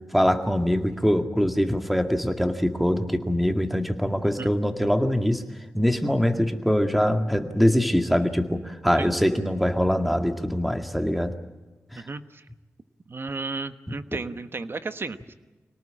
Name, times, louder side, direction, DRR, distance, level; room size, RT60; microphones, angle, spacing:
voice 1, 0.1-5.4 5.7-11.3 11.9-12.0, equal, ahead, 6 dB, 2.0 m, -23 dB
voice 2, 11.9-12.4 13.1-15.3, right 3 dB, 45° right, 10 dB, 1.2 m, -34 dB
25.5 x 18.5 x 8.8 m, 1.2 s
wide cardioid pair, 85°, 5 cm